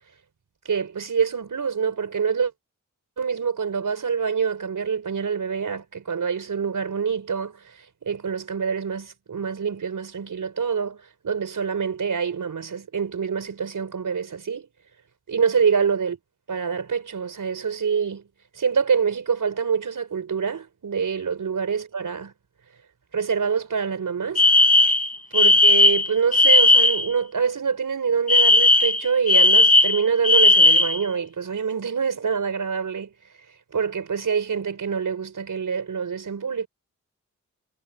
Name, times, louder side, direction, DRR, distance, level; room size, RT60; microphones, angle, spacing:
voice 1, 0.6-2.5 3.2-7.6 8.0-14.7 15.3-16.2 16.5-18.2 18.5-22.3 23.1-24.5 25.3-33.1 33.7-36.7, right 6 dB, 75° right, 5.0 m, -26 dB
Alarm, 24.4-27.1 28.3-31.0, left 2 dB, 25° left, 1.2 m, -16 dB
wide cardioid pair, 70°, 32 cm